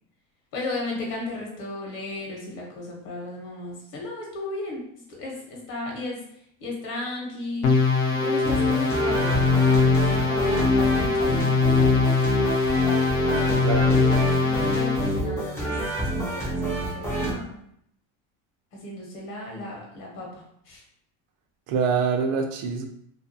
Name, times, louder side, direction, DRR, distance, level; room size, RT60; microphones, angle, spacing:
voice 1, 0.5-4.8 5.1-6.2 6.6-12.4 14.4-17.6 18.7-20.8, left 2 dB, 50° left, -1 dB, 0.9 m, -35 dB
sound 1, 7.6-15.2, left 4 dB, 80° left, 0.7 m, -21 dB
sound 2, 8.4-17.3, right 1 dB, 5° left, 0.3 m, -28 dB
voice 2, 13.3-13.9 21.7-22.9, right 5 dB, 50° right, 4 dB, 0.5 m, -25 dB
2.4 x 2.2 x 2.7 m, 0.69 s
supercardioid pair, 120°, 43 cm